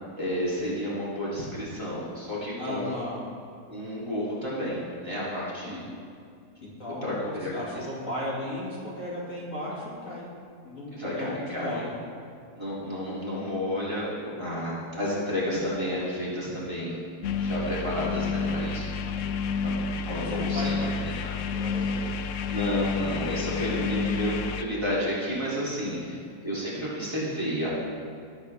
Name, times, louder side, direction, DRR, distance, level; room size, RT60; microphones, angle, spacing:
voice 1, 0.2-3.0 3.7-5.8 7.0-7.9 10.9-11.8 12.6-17.0 17.4-19.7 20.1-20.8 21.2-21.3 22.5-26.1 26.4-27.7, equal, 15° right, -9 dB, 3.0 m, -31 dB
voice 2, 2.6-3.2 5.6-5.8 6.6-10.3 10.6-11.9 20.1-21.2 21.5-22.1 25.9-26.0, left 1 dB, 50° left, -6 dB, 2.7 m, -36 dB
sound 1, 17.2-24.6, left 4 dB, 70° left, 0.7 m, -29 dB
18.5 x 8.2 x 3.5 m, 2.3 s
omnidirectional pair, 1.8 m